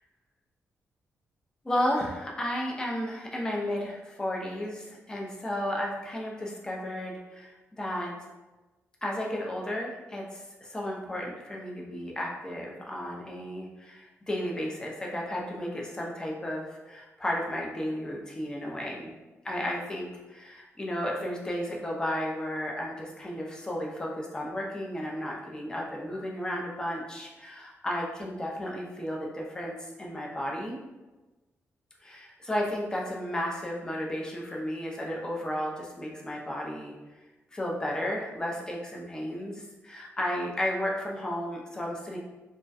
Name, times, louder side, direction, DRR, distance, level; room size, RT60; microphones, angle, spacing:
voice 1, 1.7-8.1 9.0-19.1 19.4-30.8 32.0-37.2 37.5-42.2, left 1 dB, 15° left, -2 dB, 0.4 m, -33 dB
2.3 x 2.1 x 2.5 m, 1.1 s
wide cardioid pair, 135°, 5 cm